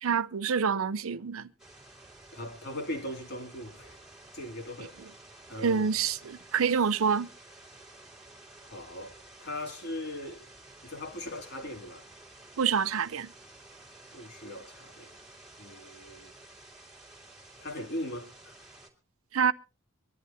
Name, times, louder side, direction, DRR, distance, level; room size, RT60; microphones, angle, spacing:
voice 1, 0.0-1.5 5.6-7.3 12.6-13.3 19.3-19.5, right 6 dB, 70° right, 0.5 m, -27 dB
sound 1, 1.6-18.9, right 2 dB, 5° right, 2.4 m, -52 dB
voice 2, 2.3-4.0 4.3-5.0 5.5-5.9 8.7-9.1 9.4-10.5 10.8-12.1 14.1-15.1 15.6-16.4 17.6-18.6, left 1 dB, 50° left, 2.6 m, -39 dB
25.0 x 11.0 x 2.8 m
head